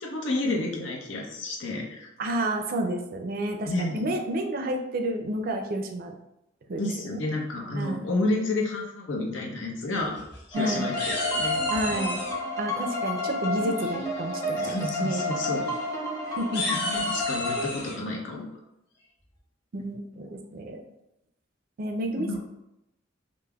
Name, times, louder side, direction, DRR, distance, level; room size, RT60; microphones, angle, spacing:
voice 1, 0.0-2.1 3.7-4.1 6.8-10.2 10.5-11.6 14.6-15.6 16.7-18.5 22.2-22.4, left 2 dB, 85° left, -1 dB, 0.7 m, -30 dB
voice 2, 2.2-6.1 6.7-6.8 7.1-7.2 7.7-8.0 10.5-10.8 11.7-12.2 12.6-15.2 16.3-16.8 19.7-20.8 21.8-22.4, right 1 dB, 50° right, 4 dB, 0.4 m, -30 dB
sound 1, 10.0-10.6 11.0-12.3 13.8-14.2 14.6-14.8 15.1-15.2 15.6-15.8 16.4-18.0, left 1 dB, 60° left, 1.0 m, -33 dB
sound 2, 10.5-17.7, left 2 dB, 20° left, 0.7 m, -30 dB
5.2 x 2.0 x 2.3 m, 0.88 s
head